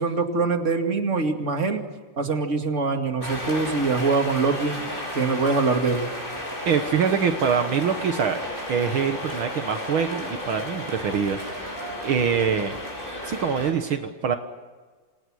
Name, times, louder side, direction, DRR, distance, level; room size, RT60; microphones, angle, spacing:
voice 1, 0.0-1.8 2.2-4.8 5.1-6.1, right 4 dB, 35° right, 4 dB, 2.6 m, -23 dB
sound 1, 3.2-13.7, left 1 dB, 20° left, 6.0 m, -33 dB
voice 2, 6.7-8.4 8.7-11.8 12.0-12.8 13.3-14.4, right 6 dB, 70° right, 7 dB, 2.1 m, -24 dB
28.0 x 27.5 x 6.4 m, 1.4 s
omnidirectional pair, 2.4 m